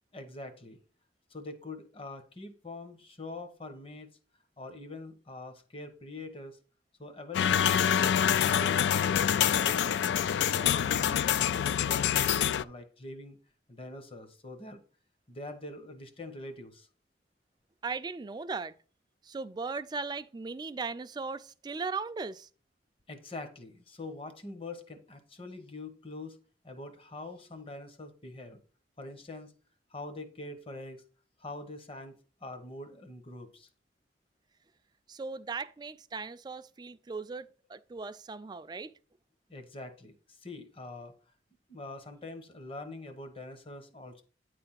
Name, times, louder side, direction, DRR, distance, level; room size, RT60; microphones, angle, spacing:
voice 1, 0.1-0.8 1.3-4.1 4.6-6.6 7.0-9.1 9.4-9.9 10.4-13.4 13.7-14.8 15.3-16.9 23.1-26.4 26.6-28.6 29.0-29.5 29.9-31.0 31.4-33.7 39.5-41.1 41.7-44.2, left 2 dB, 30° left, 1.0 m, -44 dB
sound 1, 7.3-12.6, left 9 dB, 75° left, 0.3 m, -26 dB
voice 2, 17.8-18.7 19.2-22.5 35.1-38.9, right 4 dB, 25° right, 0.4 m, -38 dB
9.4 x 3.4 x 5.7 m
head